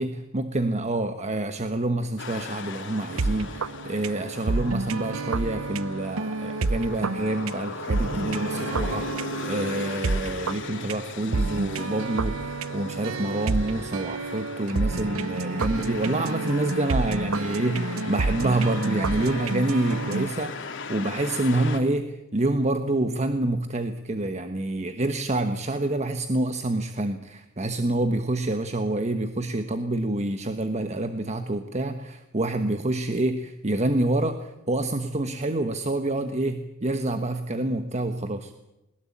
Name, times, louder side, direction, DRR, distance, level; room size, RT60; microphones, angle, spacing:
voice 1, 0.0-38.5, right 2 dB, 35° right, 8 dB, 1.2 m, -27 dB
sound 1, 2.2-21.8, left 4 dB, 60° left, 2.9 m, -38 dB
sound 2, 3.1-20.3, right 3 dB, 70° right, 0.8 m, -30 dB
21.0 x 20.0 x 8.6 m, 0.91 s
head